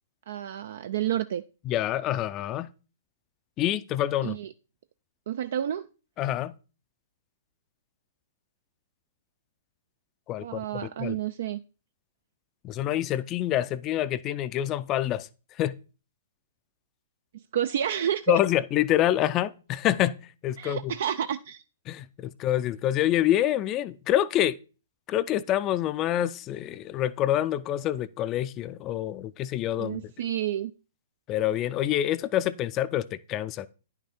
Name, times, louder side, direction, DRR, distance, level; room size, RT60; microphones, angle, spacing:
voice 1, 0.3-1.4 4.2-4.5 5.3-5.9 10.4-11.6 17.5-18.4 20.6-21.6 29.8-30.7, right 10 dB, 60° right, 0.3 m, -30 dB
voice 2, 1.7-2.7 3.6-4.4 6.2-6.5 10.3-11.2 12.6-15.3 15.6-15.7 18.3-20.2 20.4-20.9 21.9-24.6 25.1-30.0 31.3-33.7, left 12 dB, 30° left, 0.4 m, -27 dB
9.8 x 5.9 x 4.2 m
figure-of-eight pair, 115°, 0 cm